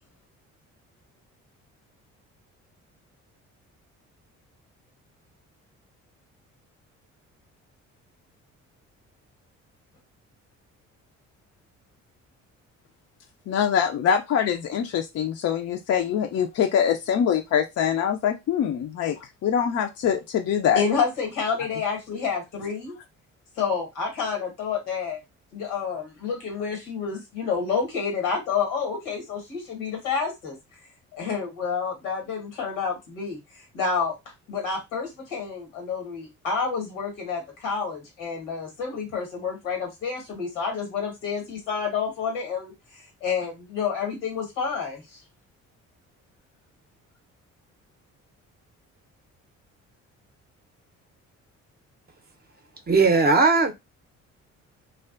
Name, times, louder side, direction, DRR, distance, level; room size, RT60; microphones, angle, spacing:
voice 1, 13.5-20.8, left 8 dB, 45° left, 0.4 m, -24 dB
voice 2, 20.7-23.0 23.6-25.2 25.5-30.6 31.1-33.4 33.7-34.1 34.5-42.7 43.2-45.0, left 5 dB, 85° left, 1.1 m, -29 dB
voice 3, 52.9-53.7, right 4 dB, 25° right, 0.6 m, -18 dB
2.4 x 2.2 x 2.4 m
hypercardioid pair, 50°, 37 cm